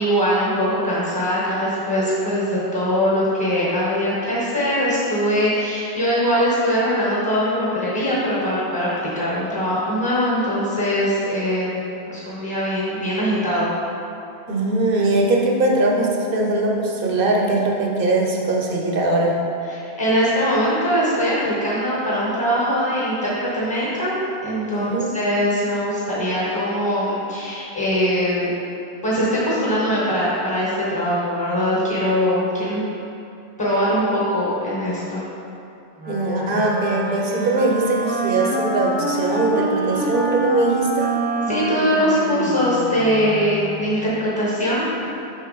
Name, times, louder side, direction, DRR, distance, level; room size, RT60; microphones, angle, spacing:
voice 1, 0.0-13.7 19.7-24.1 24.4-28.5 29.0-32.8 33.6-35.2 41.5-45.1, equal, 25° left, -7 dB, 1.2 m, -22 dB
voice 2, 14.5-19.4 24.7-25.1 36.1-41.1, right 2 dB, 60° right, -1 dB, 1.1 m, -21 dB
Wind instrument woodwind instrument, 36.0-44.1, right 2 dB, 15° right, 0.3 m, -27 dB
6.6 x 5.6 x 4.0 m, 2.7 s
omnidirectional pair, 1.1 m